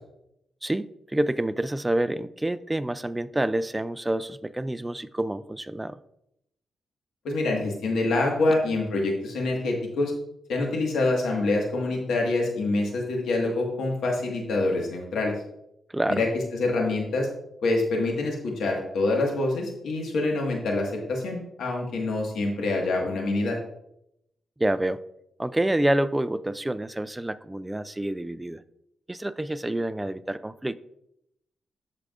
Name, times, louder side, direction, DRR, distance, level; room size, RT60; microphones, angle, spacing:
voice 1, 0.6-6.0 15.9-16.2 24.6-25.0 25.4-28.6 29.1-30.8, right 1 dB, 15° right, 14 dB, 0.4 m, -28 dB
voice 2, 7.2-10.1 10.5-15.3 16.1-16.3 16.6-17.3 17.6-23.6, left 2 dB, 85° left, 0 dB, 1.7 m, -26 dB
13.0 x 4.8 x 2.5 m, 0.79 s
cardioid pair, 90°, 0 cm